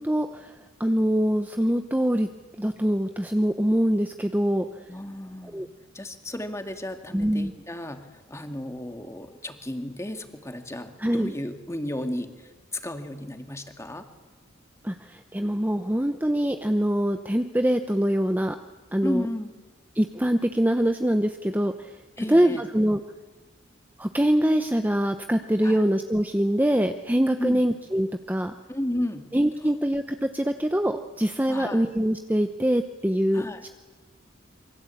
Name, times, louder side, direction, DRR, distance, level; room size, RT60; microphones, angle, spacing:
voice 1, 0.0-2.3 2.6-4.6 5.4-5.7 7.1-7.5 11.0-11.3 14.8-18.6 18.9-19.3 19.9-22.0 22.3-23.0 24.0-28.5 29.3-33.7, equal, 10° right, 7 dB, 0.8 m, -24 dB
voice 2, 4.9-5.7 5.9-14.0 19.0-19.5 22.2-22.6 25.6-25.8 27.4-27.7 28.7-29.3 31.5-31.8 33.3-33.7, left 1 dB, 15° left, 6 dB, 2.1 m, -33 dB
27.0 x 24.0 x 8.5 m, 1.2 s
head